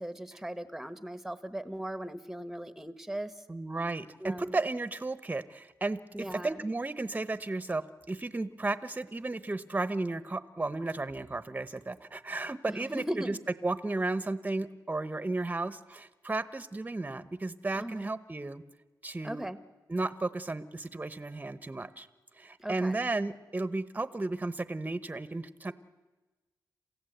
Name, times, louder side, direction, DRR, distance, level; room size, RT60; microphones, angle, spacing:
voice 1, 0.0-3.3 4.2-4.6 6.1-6.6 12.7-13.4 17.7-18.1 19.2-19.6 22.6-23.0, right 1 dB, 5° right, 11 dB, 1.2 m, -38 dB
voice 2, 3.5-7.8 8.1-13.4 13.6-18.6 19.0-19.5 19.9-22.1 22.4-25.7, right 2 dB, 20° right, 13 dB, 1.0 m, -34 dB
28.0 x 15.5 x 8.0 m, 1.2 s
cardioid pair, 90°, 7 cm